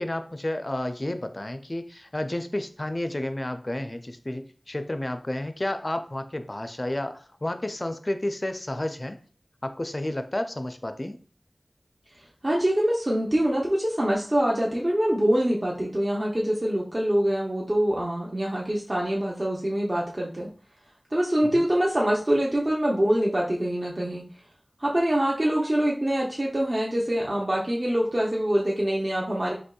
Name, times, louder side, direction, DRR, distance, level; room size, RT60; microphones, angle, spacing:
voice 1, 0.0-9.2 9.6-11.2 21.6-21.7, left 1 dB, 35° left, 8 dB, 0.4 m, -31 dB
voice 2, 12.4-20.5 21.1-24.2 24.8-29.5, right 1 dB, 45° right, -3 dB, 0.6 m, -24 dB
4.3 x 2.8 x 2.3 m, 0.42 s
wide cardioid pair, 55°, 0 cm